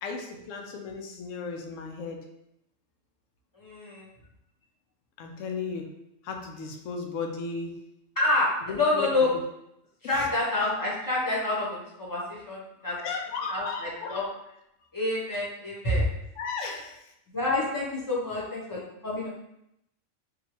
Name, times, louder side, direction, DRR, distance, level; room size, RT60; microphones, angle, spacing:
voice 1, 0.0-2.2 5.2-5.9 6.2-7.8 8.7-9.3 10.0-10.3 13.0-14.3 16.4-17.0, left 4 dB, 80° left, 3 dB, 0.9 m, -35 dB
voice 2, 3.5-4.0 8.2-9.3 10.0-12.6 12.8-13.0 13.5-14.2 14.9-16.0 17.3-19.3, left 2 dB, 20° left, -6 dB, 0.8 m, -28 dB
3.7 x 2.3 x 3.0 m, 0.81 s
omnidirectional pair, 1.3 m